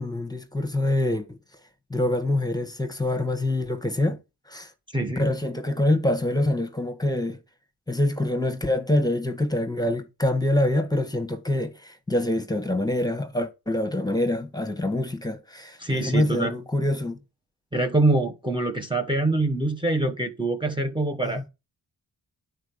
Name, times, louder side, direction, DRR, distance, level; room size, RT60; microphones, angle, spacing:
voice 1, 0.0-1.4 1.9-4.2 4.5-4.7 5.1-7.4 7.9-17.2 21.2-21.4, left 1 dB, 10° left, 1.5 m, -25 dB
voice 2, 4.9-5.3 15.8-16.5 17.7-21.4, right 2 dB, 10° right, 1.2 m, -24 dB
9.5 x 4.7 x 6.8 m
cardioid pair, 80°, 41 cm